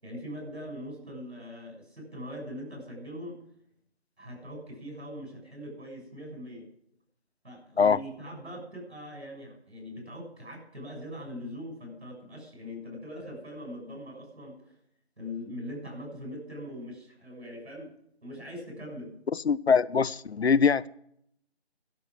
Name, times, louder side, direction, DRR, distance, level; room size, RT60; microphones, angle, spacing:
voice 1, 0.0-3.4 4.2-6.6 7.4-14.7 15.2-17.9 18.2-19.1, equal, 65° right, 6.9 m, -41 dB
voice 2, 19.3-20.9, left 6 dB, 70° left, 0.6 m, -23 dB
12.0 x 6.1 x 9.2 m
figure-of-eight pair, 175°, 34 cm